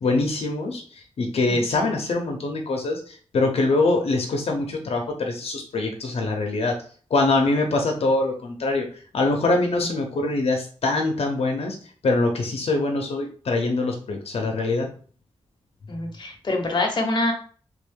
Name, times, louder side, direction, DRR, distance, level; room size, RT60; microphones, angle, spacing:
voice 1, 0.0-6.7 7.1-8.9 9.1-11.8 12.0-14.9, left 2 dB, 80° left, 2 dB, 0.7 m, -24 dB
voice 2, 15.9-17.3, left 2 dB, 45° left, 2 dB, 0.8 m, -25 dB
3.5 x 2.6 x 3.6 m, 0.42 s
wide cardioid pair, 115°, 10 cm